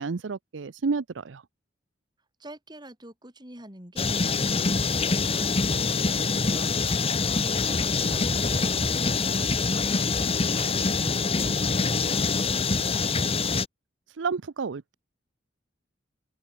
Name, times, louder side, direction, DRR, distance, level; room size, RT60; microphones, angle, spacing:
voice 1, 0.0-1.4 14.2-14.9, right 4 dB, 85° right, 0.6 m, -30 dB
voice 2, 2.4-13.1, right 1 dB, 25° right, 6.2 m, -45 dB
Shower running, 4.0-13.6, left 4 dB, 30° left, 1.3 m, -25 dB
open air
head